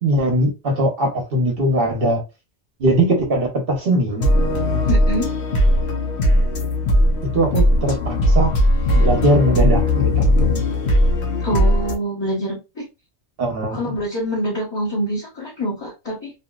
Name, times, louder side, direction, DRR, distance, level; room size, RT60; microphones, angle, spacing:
voice 1, 0.0-2.2 2.8-4.3 7.3-8.5 8.9-10.6 13.4-13.8, right 1 dB, 60° right, 1.0 m, -20 dB
sound 1, 4.2-11.9, left 1 dB, 70° left, 1.0 m, -18 dB
voice 2, 4.9-5.3 11.4-12.9 13.7-16.3, equal, 25° left, 0.9 m, -25 dB
2.8 x 2.8 x 2.3 m
omnidirectional pair, 1.1 m